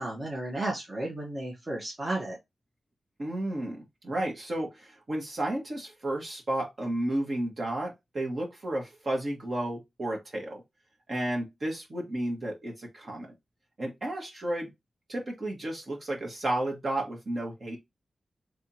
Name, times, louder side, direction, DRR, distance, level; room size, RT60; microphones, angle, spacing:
voice 1, 0.0-2.4, right 1 dB, 30° right, 1.3 m, -33 dB
voice 2, 3.2-10.6 11.1-13.3 13.8-14.7 15.1-17.8, right 1 dB, 50° right, 1.7 m, -32 dB
3.5 x 3.4 x 2.9 m
wide cardioid pair, 90°, 0 cm